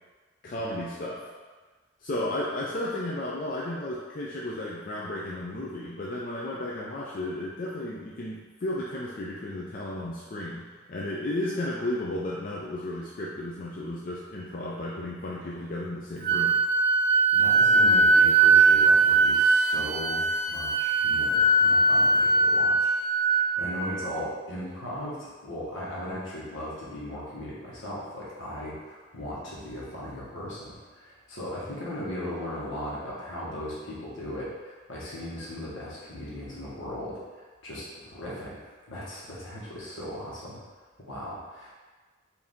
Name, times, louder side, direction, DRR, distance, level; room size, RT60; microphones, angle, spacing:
voice 1, 0.4-1.3 2.0-16.6, left 1 dB, 45° left, -5 dB, 0.4 m, -33 dB
Wind instrument woodwind instrument, 16.2-24.0, right 3 dB, 50° right, 0.5 m, -21 dB
voice 2, 17.3-40.6 41.0-41.7, left 1 dB, 70° left, -7 dB, 1.3 m, -38 dB
4.6 x 2.7 x 3.6 m, 1.4 s
head